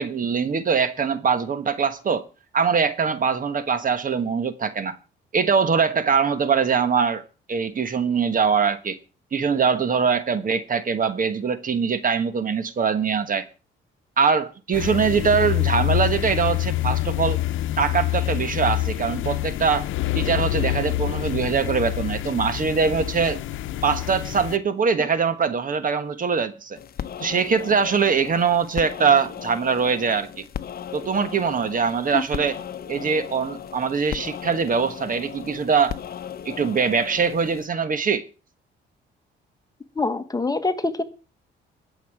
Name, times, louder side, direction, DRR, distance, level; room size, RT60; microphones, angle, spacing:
voice 1, 0.0-2.2 2.5-5.0 5.3-7.2 7.5-9.0 9.3-13.4 14.2-17.4 17.8-19.8 20.1-23.4 23.8-26.8 27.2-30.5 30.9-32.6 32.9-36.0 36.4-38.2, right 6 dB, 45° right, 1.3 m, -22 dB
sound 1, 14.7-24.6, left 16 dB, 80° left, 0.8 m, -26 dB
sound 2, 26.7-37.7, left 9 dB, 50° left, 0.8 m, -36 dB
voice 2, 40.0-41.0, left 3 dB, 20° left, 1.3 m, -24 dB
21.0 x 7.2 x 4.7 m
cardioid pair, 90°, 20 cm